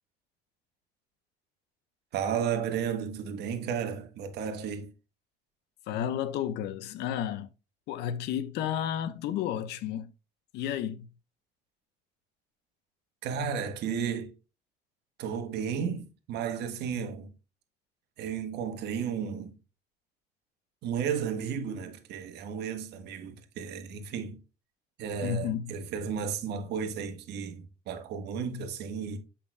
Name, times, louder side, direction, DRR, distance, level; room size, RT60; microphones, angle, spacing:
voice 1, 2.1-4.9 13.2-14.3 15.2-17.3 18.2-19.5 20.8-24.4 25.0-29.2, right 7 dB, 80° right, 1.5 m, -33 dB
voice 2, 5.9-7.5 7.9-10.1 10.5-11.1 25.2-25.7, left 10 dB, 85° left, 0.8 m, -32 dB
8.2 x 5.8 x 2.2 m
cardioid pair, 110°, 17 cm